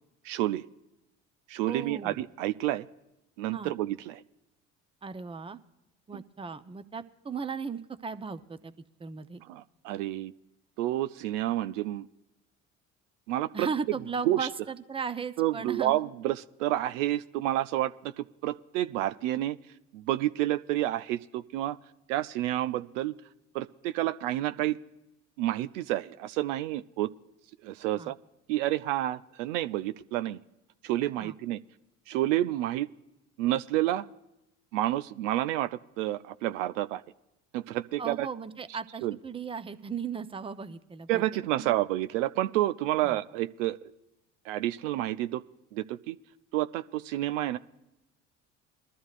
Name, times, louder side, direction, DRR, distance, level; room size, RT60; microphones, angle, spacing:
voice 1, 0.2-0.7 1.5-2.9 3.4-4.2 6.1-6.2 9.5-10.3 10.8-12.1 13.3-13.7 14.3-14.5 15.4-19.6 19.9-21.8 22.1-23.1 23.5-24.8 25.4-27.1 27.6-28.1 28.5-30.4 30.8-31.6 32.1-32.9 33.4-34.1 34.7-37.0 37.5-38.3 39.0-39.1 41.1-43.9 44.5-45.4 45.7-46.2 46.5-47.6, right 14 dB, 80° right, 13 dB, 0.5 m, -29 dB
voice 2, 1.7-2.2 3.5-3.7 5.0-5.6 6.1-8.7 9.0-9.4 13.5-16.1 28.0-28.1 31.2-31.4 38.0-41.2 41.6-41.8 43.0-43.2, right 5 dB, 15° right, 10 dB, 0.6 m, -36 dB
22.0 x 12.5 x 2.4 m, 0.93 s
hypercardioid pair, 65°, 37 cm